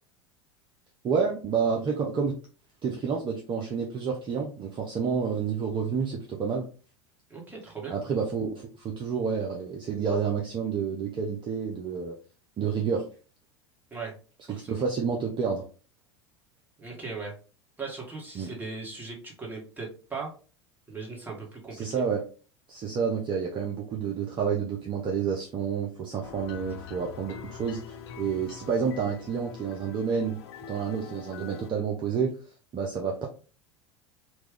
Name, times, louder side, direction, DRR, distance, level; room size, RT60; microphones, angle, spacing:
voice 1, 1.0-2.3 2.8-6.7 7.9-12.2 12.6-13.0 14.5-15.6 18.4-18.5 21.7-22.2 22.7-30.4 30.7-32.4 32.7-33.3, right 6 dB, 35° right, 0 dB, 0.6 m, -29 dB
voice 2, 7.3-7.9 13.9-14.1 14.5-14.8 16.8-17.3 17.8-20.3 20.9-22.1, right 4 dB, 15° right, -2 dB, 1.5 m, -38 dB
sound 1, 26.2-31.7, left 8 dB, 70° left, 0.4 m, -44 dB
3.0 x 2.2 x 3.6 m, 0.37 s
hypercardioid pair, 80°, 14 cm